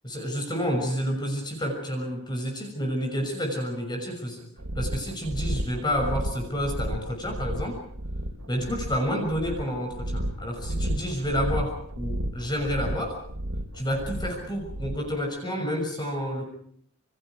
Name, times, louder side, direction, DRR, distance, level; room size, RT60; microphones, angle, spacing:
voice 1, 0.0-4.4 4.7-7.8 8.5-13.2 13.7-16.4, equal, 20° left, 3 dB, 6.3 m, -29 dB
sound 1, 4.6-15.1, equal, 90° right, 3.7 m, -32 dB
28.0 x 28.0 x 4.7 m, 0.64 s
head